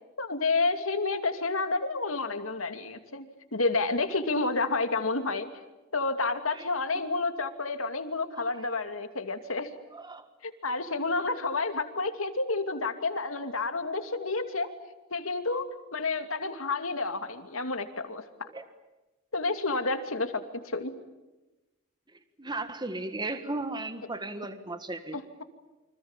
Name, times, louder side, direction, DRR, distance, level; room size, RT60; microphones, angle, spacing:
voice 1, 0.2-5.5 5.9-9.7 10.4-14.7 15.1-15.7 15.9-18.2 19.3-20.9 25.1-25.4, left 3 dB, 85° left, 7 dB, 2.7 m, -30 dB
voice 2, 9.9-10.3 18.5-18.6 22.4-25.2, right 2 dB, 20° right, 9 dB, 1.7 m, -36 dB
29.0 x 26.0 x 7.4 m, 1.1 s
head